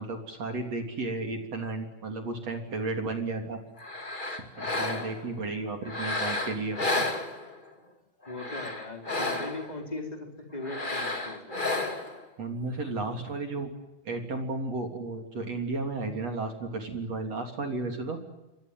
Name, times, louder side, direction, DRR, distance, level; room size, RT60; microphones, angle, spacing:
voice 1, 0.0-3.6 4.3-7.0 12.4-13.7 14.1-18.2, right 3 dB, 35° right, 4 dB, 3.7 m, -33 dB
sound 1, 3.8-5.3 5.8-7.7 8.2-9.7 10.6-12.2, left 2 dB, 90° left, 0.4 m, -32 dB
voice 2, 5.1-5.7 8.3-11.6, left 2 dB, 10° left, 2 dB, 3.7 m, -39 dB
28.0 x 25.0 x 7.7 m, 1.0 s
omnidirectional pair, 5.6 m